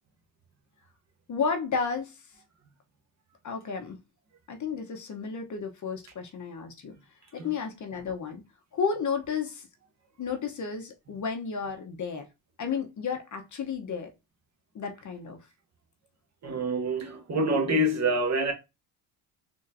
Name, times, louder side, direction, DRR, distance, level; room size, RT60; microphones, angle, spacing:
voice 1, 1.3-2.2 3.4-4.0 4.5-6.9 7.3-8.4 8.7-9.7 10.2-12.2 12.6-14.1 14.7-15.4, left 5 dB, 40° left, 1.0 m, -32 dB
voice 2, 16.4-18.5, right 1 dB, 35° right, 1.3 m, -26 dB
4.1 x 2.8 x 2.6 m
supercardioid pair, 90°, 46 cm